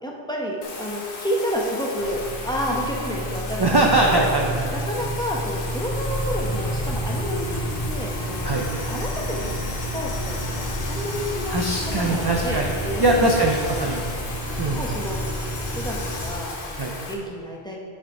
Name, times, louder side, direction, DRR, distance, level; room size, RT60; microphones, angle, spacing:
voice 1, 0.0-3.7 4.1-4.2 4.7-7.6 7.9-8.5 8.8-9.6 9.9-10.4 10.9-13.3 13.7-13.9 14.8-15.2 15.8-17.8, equal, 5° left, -2 dB, 0.8 m, -30 dB
Bathtub (filling or washing), 0.6-17.1, left 3 dB, 60° left, 1.1 m, -36 dB
sound 1, 2.0-16.3, equal, 40° left, 1.8 m, -30 dB
voice 2, 3.6-4.7 8.4-8.6 11.5-12.7 13.0-14.0 14.6-14.8 16.8-16.9, right 2 dB, 35° right, 0 dB, 0.4 m, -21 dB
6.5 x 6.1 x 4.7 m, 2.2 s
omnidirectional pair, 1.1 m